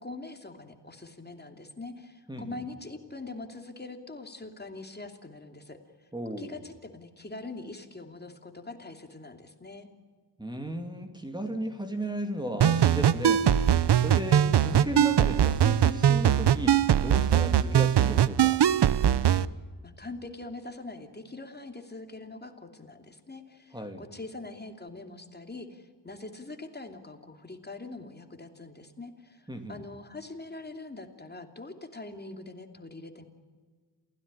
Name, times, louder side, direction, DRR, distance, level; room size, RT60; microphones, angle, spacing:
voice 1, 0.0-9.9 19.0-19.5 19.8-33.2, left 2 dB, 25° left, 6 dB, 2.8 m, -43 dB
voice 2, 6.1-6.6 10.4-18.6 23.7-24.1 29.5-29.8, right 1 dB, 10° right, 5 dB, 2.6 m, -35 dB
sound 1, 12.6-19.4, right 9 dB, 70° right, 0.8 m, -22 dB
28.0 x 16.5 x 9.9 m, 1.5 s
wide cardioid pair, 95°, 42 cm